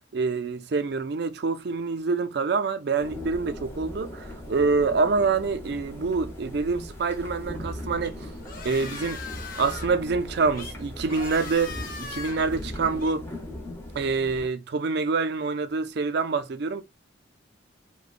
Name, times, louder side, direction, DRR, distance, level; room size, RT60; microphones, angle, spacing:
voice 1, 0.1-8.3 8.6-9.2 9.6-13.3 13.9-16.8, right 4 dB, 60° right, 0.4 m, -26 dB
sound 1, 3.0-14.5, left 1 dB, 15° left, 0.8 m, -39 dB
sound 2, 8.0-13.1, left 4 dB, 45° left, 0.8 m, -40 dB
5.0 x 2.2 x 2.4 m
head